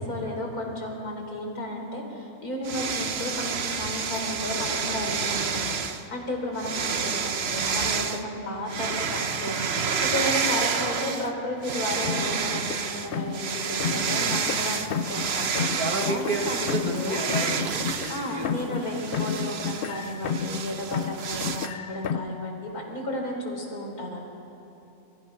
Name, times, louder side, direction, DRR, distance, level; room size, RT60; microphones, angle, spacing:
voice 1, 0.0-17.2 18.1-24.2, left 1 dB, 80° left, 1 dB, 4.4 m, -33 dB
sound 1, 2.6-6.0 6.6-8.2 8.7-11.3 11.6-21.7, right 6 dB, 50° right, 1.1 m, -29 dB
sound 2, 12.0-13.5 13.8-15.3 15.6-18.9 19.1-20.6 20.9-22.4, left 7 dB, 55° left, 0.6 m, -32 dB
voice 2, 15.6-18.8, right 2 dB, 80° right, 4 dB, 2.3 m, -31 dB
28.5 x 23.0 x 5.8 m, 2.9 s
omnidirectional pair, 1.6 m